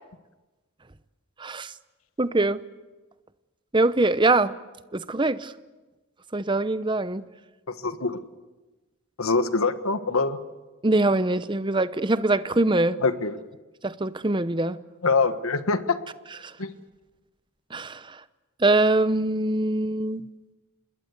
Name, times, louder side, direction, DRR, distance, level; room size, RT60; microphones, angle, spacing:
voice 1, 1.4-1.7 2.2-2.6 3.7-4.5 4.9-5.5 6.3-7.3 10.8-13.0 13.8-14.8 16.4-16.5 17.7-18.2 18.6-20.2, right 2 dB, 20° right, 14 dB, 0.8 m, -23 dB
voice 2, 7.7-8.2 9.2-10.4 13.0-13.4 15.0-16.0 16.6-16.7, left 4 dB, 85° left, 10 dB, 1.4 m, -24 dB
27.0 x 21.0 x 8.2 m, 1.2 s
head